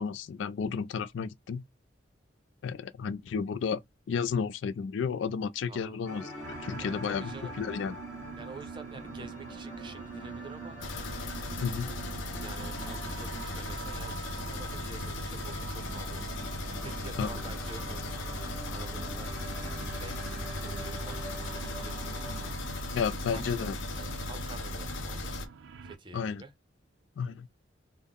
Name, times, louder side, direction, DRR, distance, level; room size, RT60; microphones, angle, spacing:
voice 1, 0.0-1.6 2.6-3.8 4.1-7.2 7.6-7.9 11.6-11.9 17.2-17.3 22.9-23.7 26.1-26.4 27.2-27.5, left 6 dB, 65° left, 0.3 m, -32 dB
sound 1, 6.0-22.5, equal, 15° left, 1.5 m, -45 dB
sound 2, 6.4-26.0, right 6 dB, 85° right, 0.5 m, -45 dB
voice 2, 6.8-7.6 8.4-10.8 12.4-19.6 20.0-20.2 20.6-22.4 22.9-25.3 25.8-26.5, right 3 dB, 25° right, 0.6 m, -48 dB
sound 3, 10.8-25.5, left 2 dB, 85° left, 0.7 m, -37 dB
3.6 x 2.1 x 3.5 m
head